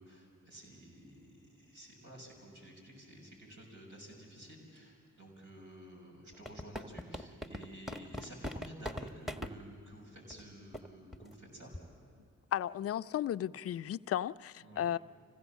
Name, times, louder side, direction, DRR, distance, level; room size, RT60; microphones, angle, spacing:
voice 1, 0.0-11.7 14.6-14.9, right 1 dB, 65° right, 6.5 m, -52 dB
sound 1, 6.3-9.5 10.3-10.4 10.7-10.9 11.1-11.3 11.7-12.0, equal, ahead, 1.2 m, -41 dB
voice 2, 12.5-15.0, left 11 dB, 45° left, 0.4 m, -34 dB
25.5 x 16.5 x 7.3 m
supercardioid pair, 45°, 32 cm